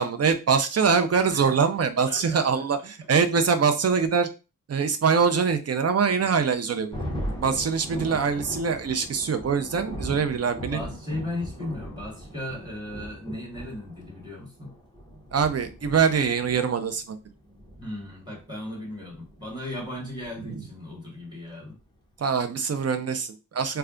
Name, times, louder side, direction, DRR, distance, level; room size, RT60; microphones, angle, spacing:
voice 1, 0.0-4.3 4.7-6.9 7.4-10.8 15.3-17.2 20.4-20.6 22.2-23.8, right 6 dB, 50° right, 8 dB, 0.5 m, -23 dB
voice 2, 2.0-2.6 10.7-14.7 17.8-21.7, left 1 dB, 10° right, -3 dB, 1.7 m, -36 dB
Thunder, 6.9-20.9, equal, 15° left, 1.0 m, -39 dB
3.3 x 2.3 x 3.7 m, 0.31 s
wide cardioid pair, 115°, 34 cm